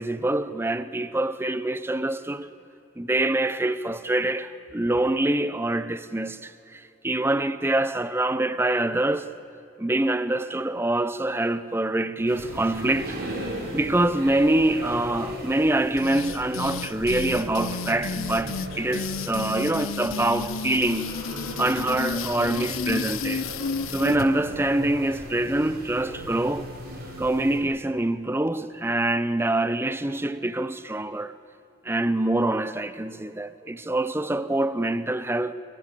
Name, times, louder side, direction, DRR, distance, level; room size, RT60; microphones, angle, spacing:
voice 1, 0.0-2.5 3.0-9.3 9.8-13.2 13.7-21.1 21.6-23.5 23.9-26.7 27.2-31.3 31.8-35.5, right 1 dB, 10° right, 0.6 m, -25 dB
sound 1, 12.3-27.6, equal, 45° right, 4.3 m, -37 dB
sound 2, 16.0-24.3, left 5 dB, 85° left, 0.7 m, -32 dB
27.5 x 15.5 x 8.3 m
head